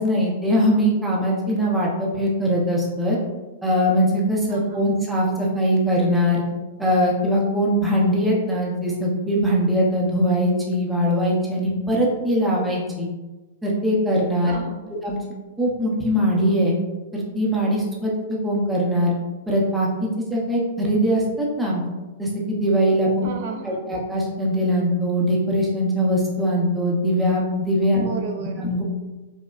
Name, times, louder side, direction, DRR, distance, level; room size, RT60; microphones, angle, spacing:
voice 1, 0.0-3.2 3.6-6.4 6.8-13.1 13.6-14.5 15.0-15.2 15.6-16.8 17.1-18.1 18.4-19.1 19.5-21.8 22.2-23.3 23.6-28.0 28.6-28.8, equal, 5° right, -4 dB, 0.6 m, -21 dB
voice 2, 4.5-4.9 14.4-14.9 23.2-23.9 28.0-28.7, right 3 dB, 50° right, 4 dB, 0.3 m, -33 dB
5.0 x 2.1 x 2.4 m, 1.2 s
supercardioid pair, 165°, 0 cm